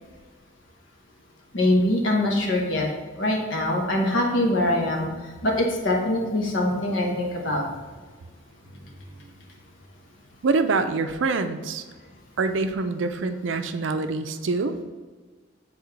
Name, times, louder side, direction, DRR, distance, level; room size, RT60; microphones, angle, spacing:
voice 1, 1.5-2.8 3.2-5.1 5.4-7.6, left 1 dB, 70° left, -1 dB, 1.2 m, -23 dB
voice 2, 10.4-11.8 12.4-14.7, right 3 dB, 75° right, 9 dB, 0.5 m, -25 dB
6.9 x 4.3 x 3.2 m, 1.4 s
head